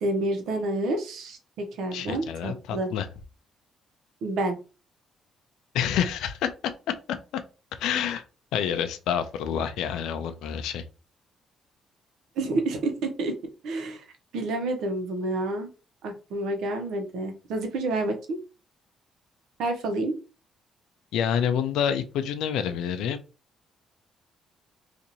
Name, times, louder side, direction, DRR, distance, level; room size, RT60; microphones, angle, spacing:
voice 1, 0.0-2.9 4.2-4.6 12.4-13.3 13.6-14.0 14.3-15.7 16.0-18.4 19.6-20.2, right 2 dB, 85° right, 0.9 m, -29 dB
voice 2, 1.9-3.1 5.7-6.5 7.8-8.2 8.5-10.8 21.1-23.2, left 8 dB, 90° left, 0.4 m, -28 dB
2.8 x 2.5 x 3.9 m
cardioid pair, 90°, 0 cm